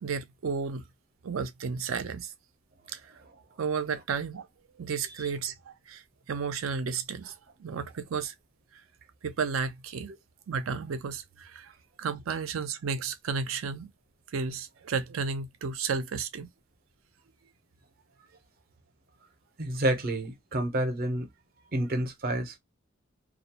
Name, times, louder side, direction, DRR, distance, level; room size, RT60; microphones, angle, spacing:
voice 1, 0.0-0.8 1.2-2.3 2.9-3.2 3.6-4.5 4.7-8.3 8.7-8.8 9.2-10.1 10.5-11.7 12.0-13.9 14.3-16.5, right 5 dB, 85° right, 0.5 m, -33 dB
voice 2, 19.6-21.3 21.7-22.6, right 1 dB, 50° right, 0.7 m, -29 dB
2.3 x 2.1 x 2.8 m
head